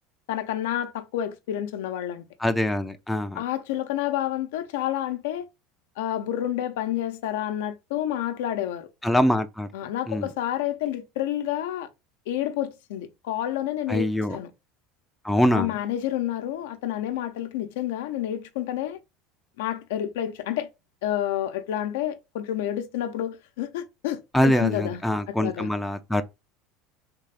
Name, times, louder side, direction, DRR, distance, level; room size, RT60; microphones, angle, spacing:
voice 1, 0.3-2.2 3.4-5.5 6.0-8.9 9.7-11.9 12.3-14.5 15.5-19.0 19.6-20.7 21.0-25.0 25.4-25.7, left 12 dB, 85° left, 0.6 m, -29 dB
voice 2, 2.4-3.4 9.0-9.7 10.1-10.3 13.9-14.4 15.2-15.7 24.3-26.2, left 1 dB, 5° left, 0.4 m, -24 dB
3.6 x 2.4 x 3.3 m
supercardioid pair, 125°, 0 cm